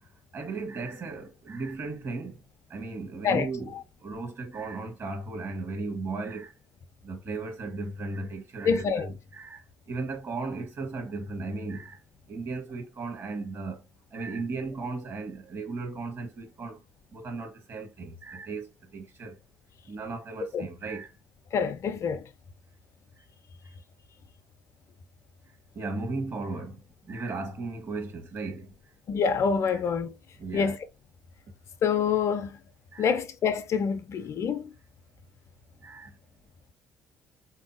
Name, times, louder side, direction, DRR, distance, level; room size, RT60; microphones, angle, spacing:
voice 1, 0.3-2.4 2.7-3.7 4.0-6.5 7.0-9.6 9.9-12.0 12.3-13.8 14.1-16.8 17.1-18.7 18.9-19.3 19.9-21.1 25.7-26.8 27.1-28.7 30.4-30.7 32.9-33.2 35.8-36.1, right 3 dB, 45° right, 1.2 m, -36 dB
voice 2, 8.6-9.1 20.5-20.7 21.5-22.3 29.1-30.1 30.5-30.8 31.8-32.5 33.0-34.7, left 6 dB, 50° left, 0.4 m, -26 dB
3.7 x 2.6 x 2.4 m
figure-of-eight pair, 50°, 7 cm